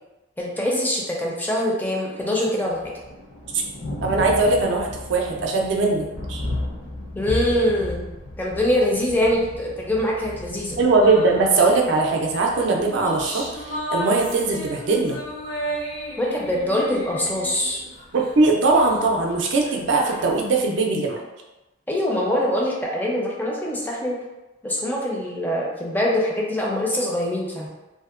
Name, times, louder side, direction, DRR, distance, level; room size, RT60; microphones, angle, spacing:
voice 1, 0.4-2.8 7.1-8.1 8.4-10.8 16.2-17.8 21.9-24.2 24.6-27.7, left 1 dB, 10° left, -3 dB, 0.4 m, -23 dB
Thunder, 2.6-20.6, left 1 dB, 70° left, 0.6 m, -36 dB
voice 2, 4.0-6.5 10.8-15.2 18.1-21.2, right 3 dB, 65° right, 0 dB, 0.4 m, -20 dB
sound 1, 11.0-11.8 12.5-18.3 18.6-20.5, equal, 90° left, 1.3 m, -34 dB
2.6 x 2.1 x 2.4 m, 1.0 s
head